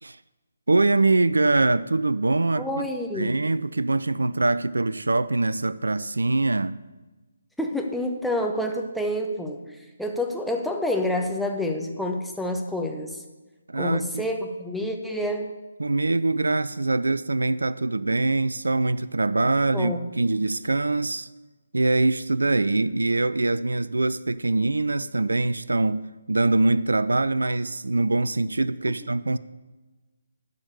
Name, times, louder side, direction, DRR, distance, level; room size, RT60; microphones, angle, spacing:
voice 1, 0.7-2.7 3.2-6.8 13.7-14.3 15.8-21.3 21.7-26.0 26.3-29.4, right 2 dB, 70° right, 0.3 m, -23 dB
voice 2, 2.6-3.3 7.6-13.2 13.8-15.5 19.7-20.0, left 1 dB, ahead, 0.8 m, -28 dB
12.0 x 5.3 x 6.9 m
figure-of-eight pair, 145°, 0 cm